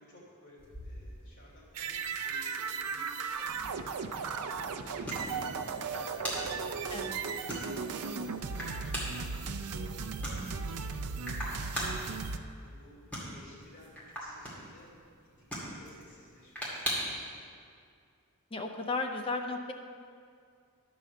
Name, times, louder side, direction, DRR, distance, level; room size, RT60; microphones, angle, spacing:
voice 1, 0.0-8.8 9.1-12.3 12.6-14.9 15.4-17.6, left 1 dB, 50° left, -5 dB, 2.9 m, -56 dB
sound 1, 0.6-17.3, equal, 5° left, 2.2 m, -42 dB
sound 2, 1.7-12.4, right 5 dB, 85° right, 0.5 m, -36 dB
sound 3, 3.4-8.9, right 1 dB, 55° right, 0.8 m, -50 dB
voice 2, 18.5-19.7, left 3 dB, 25° left, 4 dB, 0.5 m, -34 dB
11.0 x 4.9 x 6.8 m, 2.3 s
head